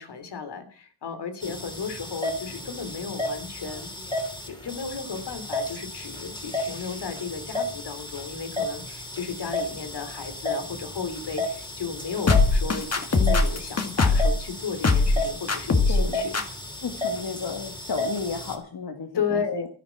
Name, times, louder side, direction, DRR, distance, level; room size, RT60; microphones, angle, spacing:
voice 1, 0.0-3.9 4.5-16.4 19.1-19.6, left 5 dB, 85° left, 8 dB, 3.2 m, -34 dB
sound 1, 1.4-18.5, left 1 dB, 10° left, 3.0 m, -33 dB
sound 2, 12.3-14.3 14.8-15.2 15.5-16.0 16.3-16.4, left 3 dB, 40° left, 2.2 m, -20 dB
voice 2, 15.9-16.3 16.8-19.7, left 5 dB, 65° left, 4 dB, 1.9 m, -33 dB
13.0 x 11.5 x 5.9 m, 0.43 s
wide cardioid pair, 120°, 40 cm